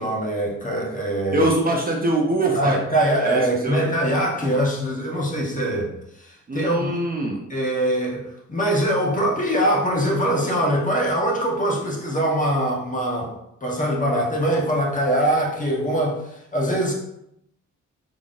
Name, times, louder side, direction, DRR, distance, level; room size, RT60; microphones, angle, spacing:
voice 1, 0.0-1.5 2.5-5.9 6.2-7.0 7.5-8.2 8.5-13.3 13.6-16.2 16.5-16.9, right 1 dB, 25° left, -1 dB, 1.0 m, -22 dB
voice 2, 1.3-2.8 3.2-3.9 6.5-7.4, right 2 dB, 30° right, 0 dB, 0.7 m, -23 dB
3.6 x 3.6 x 2.5 m, 0.80 s
cardioid pair, 90°, 30 cm